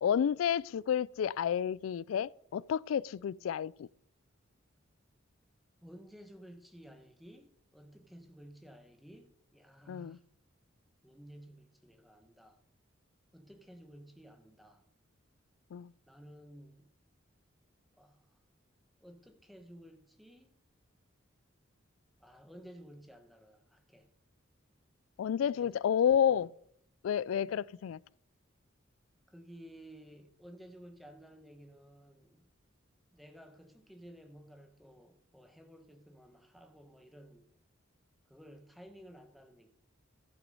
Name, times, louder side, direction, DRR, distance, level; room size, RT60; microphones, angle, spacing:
voice 1, 0.0-3.9 9.9-10.2 15.7-15.9 25.2-26.5 27.0-28.0, left 8 dB, 85° left, 0.3 m, -30 dB
voice 2, 5.8-10.2 11.0-12.6 13.3-14.8 16.1-16.9 17.9-18.4 19.0-20.6 22.2-24.1 25.4-26.1 27.4-27.6 29.3-32.4 33.1-37.5 38.3-39.7, equal, ahead, 1.2 m, -54 dB
15.0 x 5.9 x 5.4 m
head